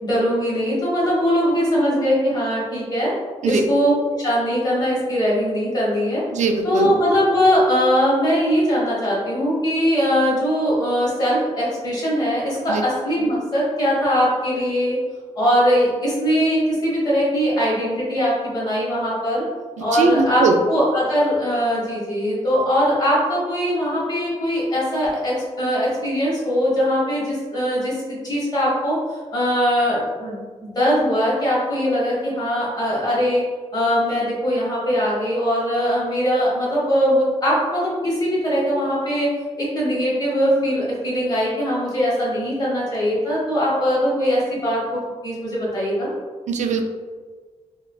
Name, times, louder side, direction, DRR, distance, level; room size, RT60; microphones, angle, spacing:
voice 1, 0.0-3.1 3.4-3.9 4.2-6.2 6.6-15.0 15.3-19.4 19.8-29.0 29.3-33.4 33.7-39.3 39.6-46.1, equal, 35° left, -7 dB, 1.4 m, -21 dB
voice 2, 6.3-6.9 12.7-12.8 19.8-20.6 46.5-46.8, right 4 dB, 80° right, 4 dB, 0.4 m, -20 dB
4.5 x 2.4 x 2.3 m, 1.5 s
wide cardioid pair, 135°, 12 cm